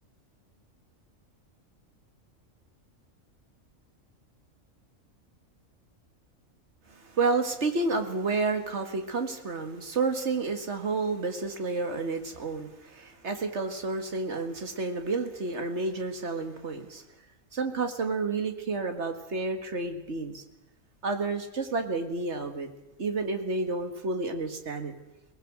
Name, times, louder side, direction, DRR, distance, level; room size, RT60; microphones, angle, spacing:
voice 1, 6.9-17.0 17.5-20.4 21.0-22.7 23.0-24.9, right 3 dB, 55° right, 6 dB, 2.1 m, -30 dB
23.0 x 18.5 x 6.2 m, 0.97 s
omnidirectional pair, 1.4 m